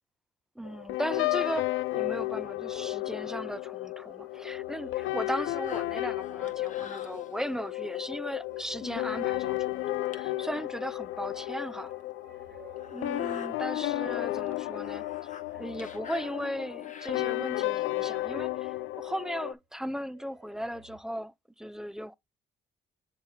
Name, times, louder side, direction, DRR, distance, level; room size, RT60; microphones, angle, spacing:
sound 1, 0.6-19.5, left 17 dB, 80° left, 0.5 m, -33 dB
voice 1, 0.6-1.7 1.9-11.9 12.9-22.2, equal, 5° right, 0.3 m, -37 dB
sound 2, 1.9-3.6 3.9-7.4 8.3-19.6 20.0-21.0, right 2 dB, 55° right, 1.5 m, -56 dB
sound 3, 5.6-7.7 8.4-8.5 8.8-9.2 9.6-9.7 10.1-10.2 11.2-11.3 11.8-11.9 12.8-13.5 14.0-14.2 14.5-17.5 18.1-18.2, left 6 dB, 40° left, 0.9 m, -47 dB
7.1 x 4.0 x 3.6 m
cardioid pair, 90°, 20 cm